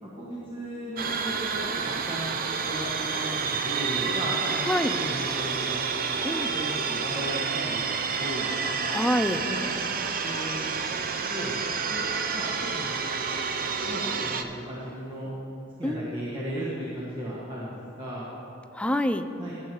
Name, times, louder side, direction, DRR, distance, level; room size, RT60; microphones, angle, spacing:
voice 1, 0.0-1.6 2.1-2.3 2.6-2.9 3.1-5.8 6.5-8.5 9.5-9.6 10.2-10.6 11.3-12.9 13.5-15.3 15.8-18.3 19.4-19.5, equal, 25° right, -7 dB, 1.7 m, -36 dB
sound 1, 1.0-14.4, right 5 dB, 45° right, 0.5 m, -29 dB
voice 2, 8.9-9.4 15.8-16.3 18.7-19.3, left 1 dB, 5° left, 9 dB, 0.3 m, -26 dB
18.0 x 8.0 x 3.0 m, 2.7 s
head